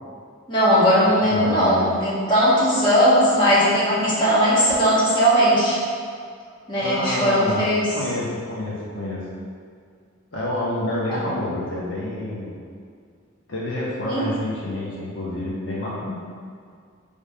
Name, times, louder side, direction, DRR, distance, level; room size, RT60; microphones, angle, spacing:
voice 1, 0.5-5.8 6.7-7.9 14.0-14.2, equal, 25° left, -9 dB, 1.5 m, -18 dB
voice 2, 1.2-1.8 6.8-7.7 7.9-9.3 10.3-12.5 13.5-16.2, left 1 dB, 65° left, -6 dB, 1.2 m, -28 dB
5.3 x 3.5 x 5.5 m, 2.1 s
head